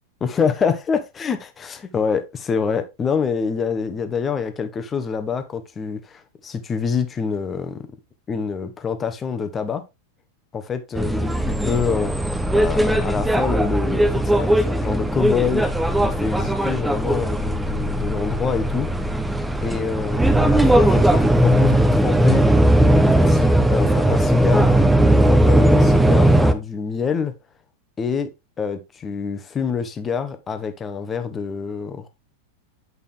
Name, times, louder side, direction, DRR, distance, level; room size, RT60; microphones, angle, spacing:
voice 1, 0.2-7.9 8.3-9.8 10.5-11.3 11.6-15.6 16.0-18.9 19.6-22.5 23.1-24.8 25.2-27.3 28.0-28.3 28.6-32.1, left 6 dB, 20° left, 1.3 m, -26 dB
sound 1, 11.0-26.5, right 1 dB, 5° right, 0.9 m, -18 dB
8.7 x 5.5 x 3.6 m
figure-of-eight pair, 90°, 0 cm